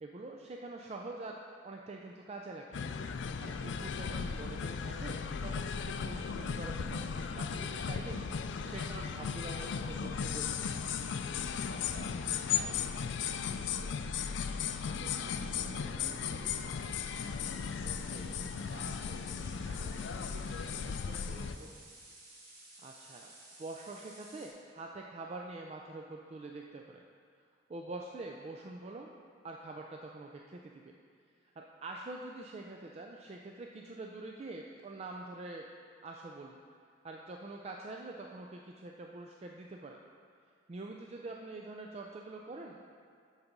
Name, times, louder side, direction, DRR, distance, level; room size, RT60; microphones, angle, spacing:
voice 1, 0.0-1.4 1.6-2.8 3.4-8.2 8.6-10.7 22.8-23.3 23.6-27.0 27.7-29.1 29.4-30.9 31.4-35.7 36.0-36.6 37.0-40.0 40.7-43.0, right 2 dB, 35° right, 0 dB, 0.4 m, -45 dB
sound 1, 2.7-21.6, left 6 dB, 75° left, 0.4 m, -36 dB
voice 2, 11.7-14.2 14.9-17.1 17.8-21.7, right 1 dB, 55° right, 3 dB, 0.7 m, -53 dB
sound 2, 16.1-24.5, right 2 dB, 85° right, 1.8 m, -55 dB
8.7 x 4.1 x 5.9 m, 2.2 s
head